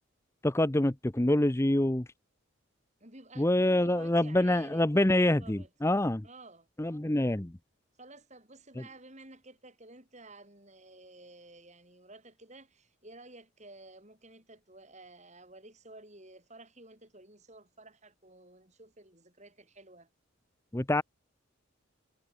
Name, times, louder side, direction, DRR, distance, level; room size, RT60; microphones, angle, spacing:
voice 1, 0.4-2.1 3.4-6.2 6.8-7.5 20.7-21.0, left 1 dB, 15° left, 0.6 m, -26 dB
voice 2, 3.0-5.7 6.2-6.7 8.0-20.1, right 2 dB, 35° right, 8.0 m, -53 dB
head